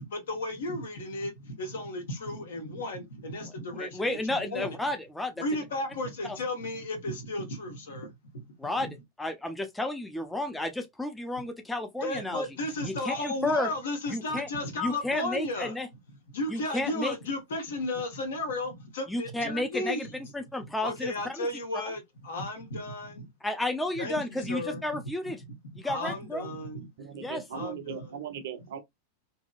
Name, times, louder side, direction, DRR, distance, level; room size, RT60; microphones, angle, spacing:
voice 1, 0.0-4.8 5.4-8.1 8.8-8.9 12.0-15.7 16.3-20.1 20.8-23.3 24.0-25.3 25.8-26.9 27.5-28.1, left 1 dB, 60° left, 1.2 m, -34 dB
voice 2, 3.8-5.4 8.6-8.9 9.2-12.4 12.8-13.7 14.1-14.5 14.8-15.9 16.5-17.1 19.1-20.1 20.3-21.5 23.4-25.4 25.8-26.5 27.2-27.4, left 1 dB, 5° left, 0.5 m, -32 dB
voice 3, 27.0-28.8, right 8 dB, 55° right, 0.5 m, -38 dB
2.8 x 2.6 x 2.4 m
figure-of-eight pair, 90°, 0 cm